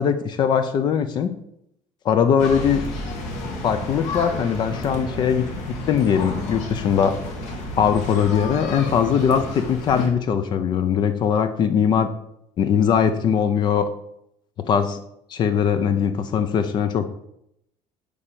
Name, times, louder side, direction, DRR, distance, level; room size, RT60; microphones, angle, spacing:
voice 1, 0.0-1.3 2.0-2.9 3.6-7.2 7.8-12.1 12.6-13.9 14.6-15.0 15.3-17.1, left 7 dB, 35° left, 10 dB, 0.6 m, -21 dB
sound 1, 2.4-10.1, left 2 dB, 70° left, 2.5 m, -31 dB
8.5 x 5.1 x 7.5 m, 0.77 s
cardioid pair, 175°, 13 cm